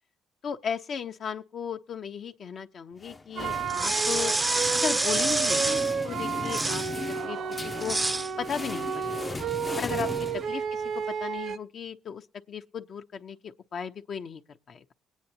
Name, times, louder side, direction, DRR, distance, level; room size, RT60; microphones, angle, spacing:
voice 1, 0.4-4.3 4.7-6.8 7.2-8.0 8.4-9.1 9.8-10.1 10.5-10.6 11.2-14.9, left 7 dB, 60° left, 0.9 m, -35 dB
sound 1, 3.0-10.9, left 3 dB, 25° left, 0.6 m, -38 dB
sound 2, 3.4-11.6, right 7 dB, 65° right, 0.8 m, -32 dB
sound 3, 3.7-5.9 6.5-6.9 7.8-8.3, right 2 dB, 15° right, 0.5 m, -27 dB
21.0 x 9.2 x 2.9 m
cardioid pair, 90°, 0 cm